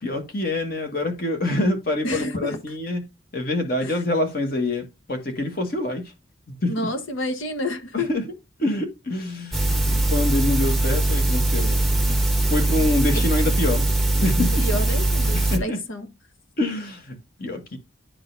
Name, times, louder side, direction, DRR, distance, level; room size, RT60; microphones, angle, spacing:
voice 1, 0.0-3.0 3.3-6.1 6.5-6.7 7.9-8.2 8.6-11.8 12.5-13.9 14.1-14.7 15.3-15.8 16.6-17.8, left 2 dB, 45° left, 1.5 m, -26 dB
voice 2, 2.0-2.6 3.8-4.0 6.7-8.1 12.8-12.9 13.1-13.2 14.6-16.1, left 1 dB, 75° left, 1.2 m, -29 dB
sound 1, 9.5-15.6, right 2 dB, ahead, 0.8 m, -21 dB
10.5 x 3.9 x 2.6 m
head